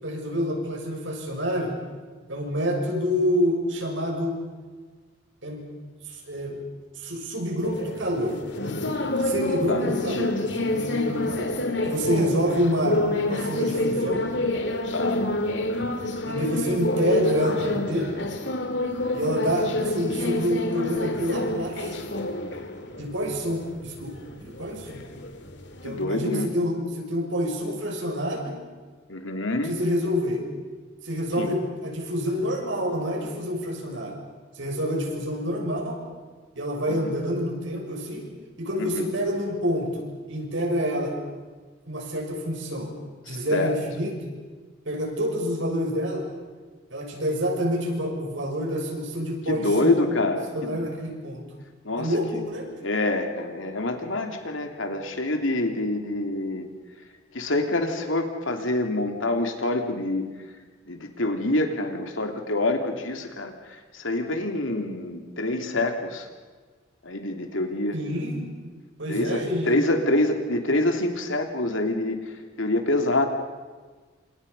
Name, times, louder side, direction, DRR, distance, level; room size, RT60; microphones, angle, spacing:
voice 1, 0.0-1.7 2.3-4.4 5.4-5.6 6.1-6.6 7.0-8.4 9.2-11.5 11.8-13.0 13.3-14.2 16.3-18.3 19.1-22.0 23.0-24.1 24.4-25.0 25.8-28.6 29.7-30.4 31.0-34.2 34.6-36.0 36.5-38.2 38.6-41.1 41.9-42.9 43.3-44.1 44.8-46.2 46.9-50.0 50.5-51.4 52.0-52.7 67.9-68.5 69.0-69.7, equal, 70° right, 1 dB, 6.8 m, -27 dB
sound 1, 7.6-26.0, left 1 dB, 60° left, 2.4 m, -28 dB
voice 2, 14.9-15.3 25.8-26.5 29.1-29.8 31.4-31.5 36.9-37.1 38.8-39.1 43.3-43.8 49.5-50.9 51.8-52.1 52.8-56.7 57.3-60.3 60.9-66.3 67.0-68.0 69.1-72.3 72.6-73.3, left 2 dB, 80° left, 4 dB, 3.1 m, -26 dB
29.0 x 27.5 x 5.6 m, 1.4 s
head